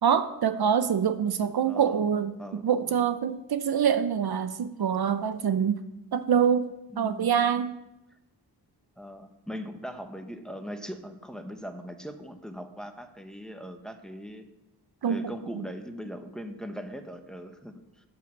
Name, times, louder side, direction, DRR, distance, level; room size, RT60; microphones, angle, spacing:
voice 1, 0.0-2.3 2.6-5.8 6.1-6.7 7.0-7.7 15.0-15.2, right 8 dB, 60° right, 11 dB, 0.7 m, -25 dB
voice 2, 1.6-2.0 2.4-3.1 6.9-7.3 9.0-14.5 15.1-18.1, equal, ahead, 7 dB, 1.1 m, -40 dB
8.7 x 7.1 x 7.1 m, 0.94 s
cardioid pair, 60°, 41 cm